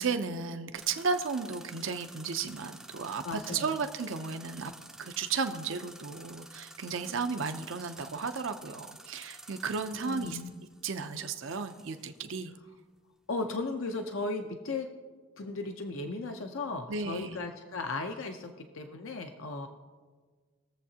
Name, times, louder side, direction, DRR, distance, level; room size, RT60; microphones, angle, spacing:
voice 1, 0.0-4.7 5.0-10.4 10.8-12.5 16.9-17.4, right 5 dB, 65° right, 8 dB, 0.6 m, -34 dB
sound 1, 0.8-12.2, right 1 dB, ahead, 0.5 m, -51 dB
voice 2, 3.2-3.8 9.9-10.5 13.3-14.9 15.4-19.7, left 3 dB, 70° left, 5 dB, 0.7 m, -36 dB
21.0 x 7.4 x 2.8 m, 1.5 s
head